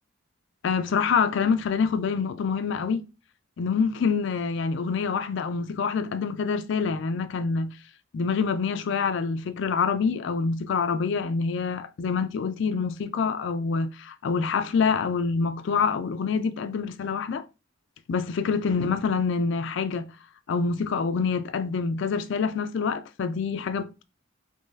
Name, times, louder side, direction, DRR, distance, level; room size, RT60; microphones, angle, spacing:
voice 1, 0.6-3.0 3.6-7.7 8.1-17.5 18.1-20.1 20.5-24.0, left 5 dB, 60° left, 0.3 m, -26 dB
3.7 x 3.1 x 2.6 m
head